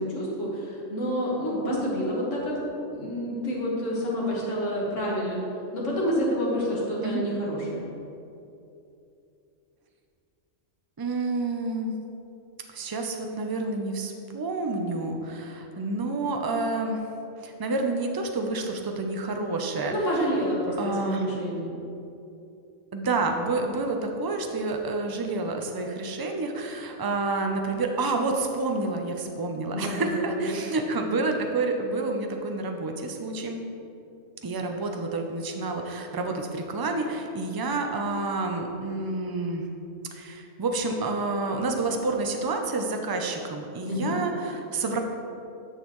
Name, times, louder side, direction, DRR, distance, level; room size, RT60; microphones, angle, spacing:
voice 1, 0.0-2.5 2.9-5.5 5.7-7.9 19.9-21.7 29.7-30.6 43.9-44.2, equal, 75° left, -5 dB, 2.1 m, -28 dB
voice 2, 11.0-12.0 12.7-17.0 17.4-19.9 20.8-21.3 22.9-33.6 34.4-39.7 40.1-45.0, right 3 dB, 30° right, 3 dB, 0.4 m, -29 dB
10.0 x 6.4 x 3.1 m, 2.7 s
omnidirectional pair, 1.3 m